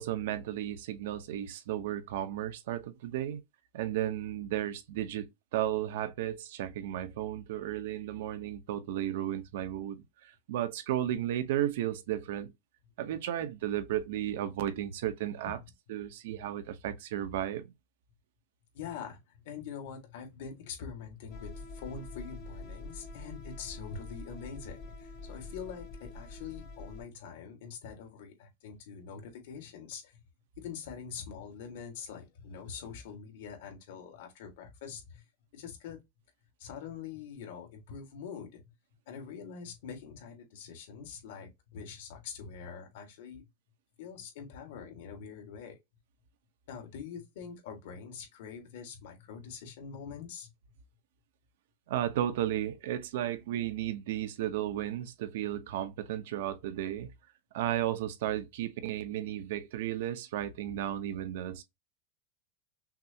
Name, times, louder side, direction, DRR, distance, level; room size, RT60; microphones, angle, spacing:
voice 1, 0.0-3.4 3.7-5.2 5.5-12.5 13.0-15.6 15.9-17.7 51.9-57.1 57.5-61.6, right 12 dB, 70° right, 0.7 m, -34 dB
voice 2, 18.7-30.2 30.6-35.2 35.5-36.0 36.6-38.7 39.1-43.5 44.0-45.8 46.7-50.5 60.7-60.8, left 6 dB, 65° left, 1.6 m, -44 dB
sound 1, 21.3-27.0, left 3 dB, 35° left, 1.1 m, -45 dB
5.9 x 2.0 x 2.8 m
supercardioid pair, 160°, 0 cm